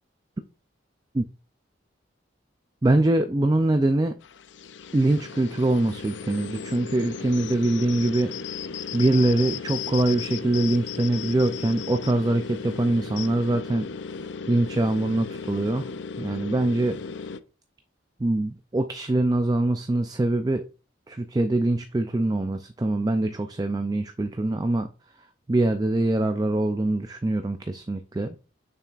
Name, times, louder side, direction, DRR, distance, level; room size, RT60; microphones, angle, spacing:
voice 1, 2.8-4.2 4.9-8.3 8.9-13.9 14.5-15.9 16.2-17.0 18.2-20.7 21.1-24.9 25.5-28.4, right 2 dB, 20° right, 0.3 m, -23 dB
sound 1, 4.2-17.4, left 6 dB, 65° left, 0.4 m, -36 dB
6.8 x 5.8 x 2.4 m
head